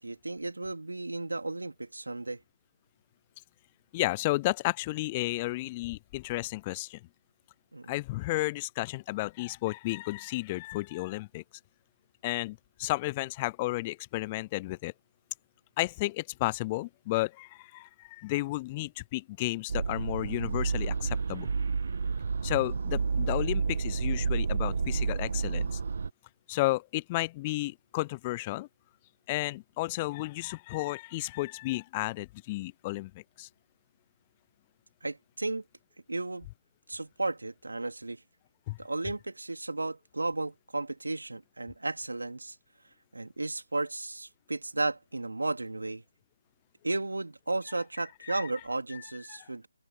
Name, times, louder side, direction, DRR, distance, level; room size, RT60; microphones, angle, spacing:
voice 1, 0.0-2.4 7.7-7.9 35.0-35.6 36.1-36.5 36.9-38.2 38.8-42.5 43.1-46.0 46.8-49.7, right 2 dB, 85° right, 3.2 m, -34 dB
voice 2, 3.9-7.0 7.9-11.4 12.2-14.9 15.8-21.5 22.4-25.8 26.5-28.7 29.3-33.5 38.7-38.8 48.2-48.5 48.9-49.0 49.3-49.5, left 20 dB, 25° left, 0.3 m, -32 dB
sound 1, 19.7-26.1, right 5 dB, 55° right, 0.5 m, -30 dB
open air
figure-of-eight pair, 155°, 0 cm